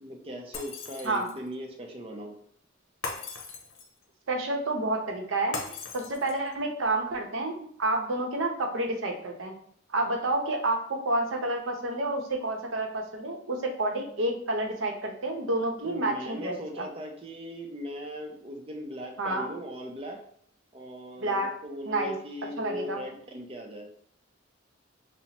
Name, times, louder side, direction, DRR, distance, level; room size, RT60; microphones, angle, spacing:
voice 1, 0.0-2.3 15.8-20.2 20.7-23.9, equal, 30° right, 2 dB, 0.6 m, -39 dB
Shatter, 0.5-1.5 3.0-4.0 5.5-6.5, left 4 dB, 65° left, 0.7 m, -38 dB
voice 2, 4.3-5.6 5.9-9.5 9.9-16.9 19.2-19.5 21.2-21.5 21.9-22.1 22.6-23.0, right 2 dB, 75° right, 2 dB, 0.7 m, -29 dB
5.6 x 2.1 x 2.9 m, 0.65 s
head